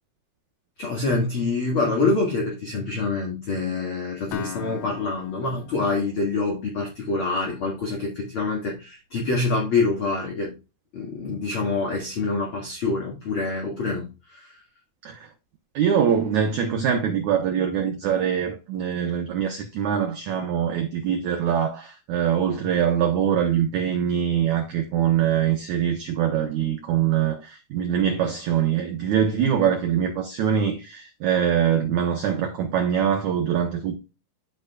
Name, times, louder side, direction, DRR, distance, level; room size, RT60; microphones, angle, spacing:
voice 1, 0.8-10.5 10.9-14.6, left 3 dB, 45° left, 1.8 m, -26 dB
Acoustic guitar, 4.3-8.2, left 8 dB, 80° left, 1.8 m, -41 dB
voice 2, 15.7-33.9, right 8 dB, 85° right, 1.7 m, -23 dB
13.0 x 5.1 x 2.3 m
omnidirectional pair, 4.8 m